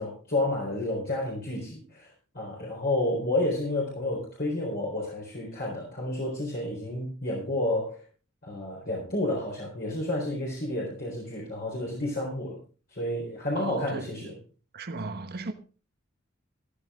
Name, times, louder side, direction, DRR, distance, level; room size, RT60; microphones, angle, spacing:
voice 1, 0.0-2.1 2.3-8.0 8.4-12.6 12.9-14.4, left 1 dB, 50° left, 4.1 m, -30 dB
voice 2, 13.5-14.3 14.7-15.5, right 3 dB, 50° right, 1.3 m, -36 dB
14.5 x 12.5 x 3.7 m
head